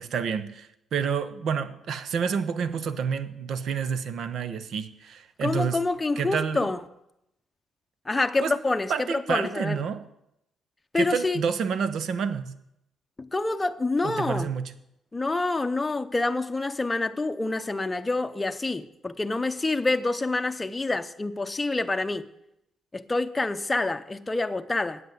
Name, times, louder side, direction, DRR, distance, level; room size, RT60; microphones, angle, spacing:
voice 1, 0.0-5.8 6.2-6.7 8.4-8.5 8.9-10.0 10.9-12.5 14.0-14.7, right 6 dB, 65° right, 0.9 m, -29 dB
voice 2, 5.4-6.8 8.1-9.8 10.9-11.4 13.2-14.5 15.1-22.2 22.9-25.0, left 2 dB, 20° left, 0.7 m, -27 dB
9.4 x 8.0 x 7.8 m
cardioid pair, 90°, 0 cm